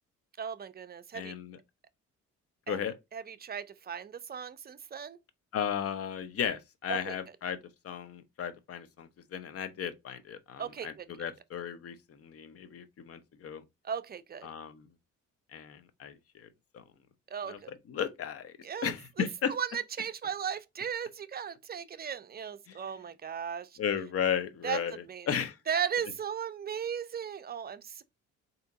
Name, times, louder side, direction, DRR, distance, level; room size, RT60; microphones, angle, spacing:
voice 1, 0.4-1.3 2.7-2.8 3.1-5.2 6.9-7.1 10.6-11.1 13.8-14.5 17.3-17.7 18.6-18.9 19.5-23.8 24.6-24.8 25.1-25.3 25.7-28.1, right 8 dB, 30° right, 0.5 m, -36 dB
voice 2, 1.1-1.6 2.7-3.0 5.5-13.6 14.4-14.9 15.5-16.5 16.7-16.8 17.4-18.6 18.8-19.5 22.7-22.8 23.8-25.6, left 8 dB, 50° left, 0.7 m, -35 dB
3.8 x 2.8 x 3.5 m
cardioid pair, 90°, 30 cm